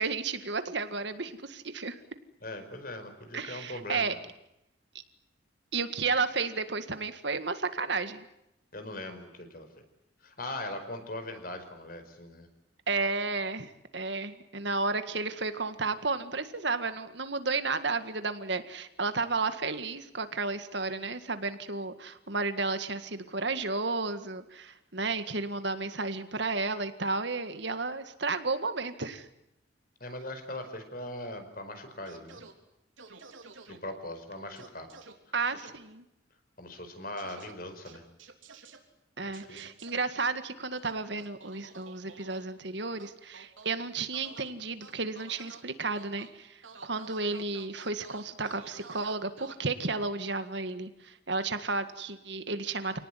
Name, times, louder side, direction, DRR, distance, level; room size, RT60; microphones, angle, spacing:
voice 1, 0.0-2.0 3.3-4.1 4.9-5.0 5.7-8.3 12.9-29.3 35.3-36.0 39.2-53.0, right 3 dB, 65° right, 10 dB, 1.9 m, -32 dB
voice 2, 2.4-4.2 8.7-9.7 10.2-12.5 30.0-32.4 33.7-34.9 36.6-38.0 39.2-39.7, left 1 dB, 50° left, 8 dB, 4.9 m, -40 dB
sound 1, 32.1-32.5 33.0-33.8 34.6-35.1 35.5-35.7 37.2-37.5 37.9-38.8 39.3-39.9 40.7-42.4 43.0-43.7 44.1-44.5 44.8-45.6 45.9-46.3 46.6-49.5, right 4 dB, 85° right, 3.5 m, -50 dB
28.0 x 19.0 x 9.9 m, 0.85 s
head